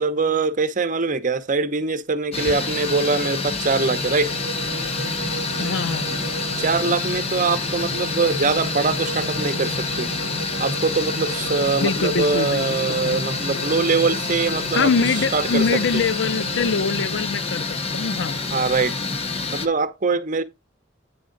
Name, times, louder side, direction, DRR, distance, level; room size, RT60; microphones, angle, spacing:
voice 1, 0.0-4.3 6.6-10.1 10.6-14.9 15.3-16.0 18.5-18.9 19.5-20.4, right 4 dB, 45° right, 0.8 m, -23 dB
sound 1, 2.3-19.7, left 4 dB, 30° left, 0.9 m, -27 dB
sound 2, 2.5-17.2, right 3 dB, 90° right, 0.7 m, -35 dB
voice 2, 5.6-6.4 11.8-13.2 14.7-18.4, left 5 dB, 65° left, 0.5 m, -24 dB
9.3 x 4.9 x 3.8 m
head